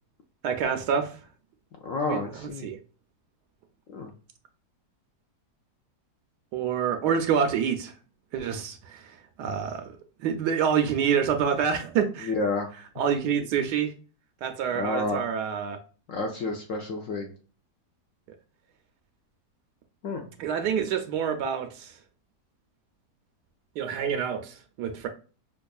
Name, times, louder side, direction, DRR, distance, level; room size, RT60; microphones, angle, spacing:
voice 1, 0.4-1.2 2.1-2.8 6.5-7.9 8.3-12.3 13.0-13.9 14.4-15.8 20.4-21.9 23.8-25.1, right 7 dB, 80° right, 1.2 m, -27 dB
voice 2, 1.8-2.7 3.9-4.1 12.2-12.7 14.7-15.2 16.1-17.3 20.0-20.3, left 3 dB, 65° left, 0.8 m, -30 dB
5.2 x 2.4 x 2.3 m
omnidirectional pair, 1.8 m